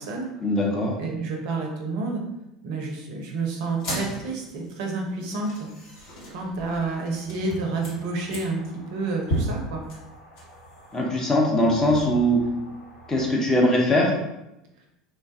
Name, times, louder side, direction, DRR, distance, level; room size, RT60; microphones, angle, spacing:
voice 1, 0.4-0.9 10.9-12.4 13.1-14.1, equal, 20° left, -1 dB, 0.7 m, -21 dB
voice 2, 1.0-2.2 2.6-5.7 6.3-8.6 8.9-9.8, right 3 dB, 55° right, 1 dB, 0.5 m, -29 dB
sound 1, 3.7-13.3, right 1 dB, 55° left, 1.0 m, -36 dB
3.2 x 2.2 x 2.7 m, 0.89 s
figure-of-eight pair, 75°, 3 cm